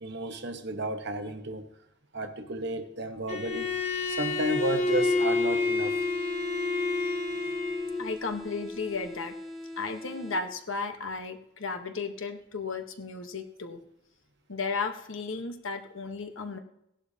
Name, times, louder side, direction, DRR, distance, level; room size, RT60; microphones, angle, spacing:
voice 1, 0.0-1.7 2.1-3.7 4.1-6.0, right 1 dB, 55° right, 1.1 m, -32 dB
Bowed string instrument, 3.3-8.1, left 3 dB, 30° left, 1.1 m, -28 dB
sound 1, 4.9-10.8, left 1 dB, ahead, 1.2 m, -42 dB
voice 2, 8.0-9.3 9.8-13.8 14.5-16.6, left 4 dB, 70° left, 1.2 m, -34 dB
17.0 x 11.5 x 2.8 m
head